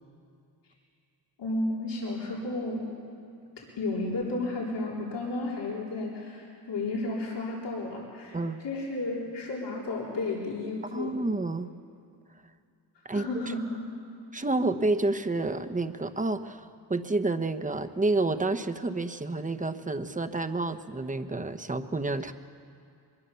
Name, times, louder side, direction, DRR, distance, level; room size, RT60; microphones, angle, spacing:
voice 1, 1.4-2.8 3.6-8.4 8.6-11.1 13.1-13.8, left 2 dB, 85° left, -4 dB, 4.1 m, -32 dB
voice 2, 10.9-11.7 13.0-13.3 14.3-22.3, right 2 dB, 20° right, 8 dB, 1.1 m, -29 dB
22.5 x 21.0 x 7.0 m, 2.5 s
cardioid pair, 80°, 41 cm